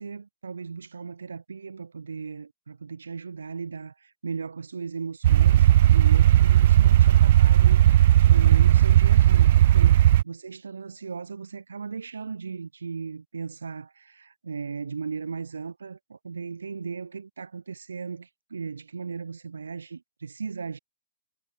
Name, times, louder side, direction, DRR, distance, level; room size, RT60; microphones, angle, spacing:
voice 1, 0.0-20.8, right 5 dB, 85° right, 5.4 m, -37 dB
sound 1, 5.2-10.2, right 13 dB, 55° right, 0.4 m, -16 dB
hypercardioid pair, 130°, 0 cm